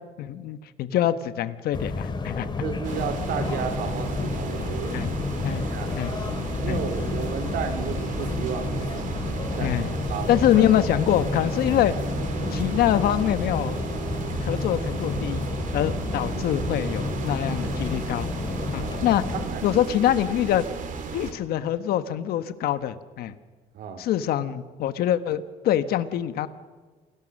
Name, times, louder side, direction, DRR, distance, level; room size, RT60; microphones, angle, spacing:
voice 1, 0.2-2.5 4.9-5.1 5.4-5.6 5.9-6.1 6.7-6.8 9.6-9.9 10.3-11.9 12.5-13.8 14.4-15.5 15.7-18.3 18.7-19.2 19.6-20.7 21.1-23.3 24.0-26.5, left 11 dB, 80° left, 11 dB, 1.3 m, -24 dB
sound 1, 1.7-19.5, left 3 dB, 30° left, 2.4 m, -31 dB
voice 2, 2.4-5.0 5.6-5.9 6.6-9.0 9.4-10.7 11.7-11.8 18.7-19.7 23.7-24.0, right 6 dB, 70° right, 10 dB, 2.5 m, -33 dB
sound 2, 2.8-21.3, right 5 dB, 55° right, 2.8 m, -34 dB
28.0 x 18.5 x 6.5 m, 1.4 s
cardioid pair, 105°, 16 cm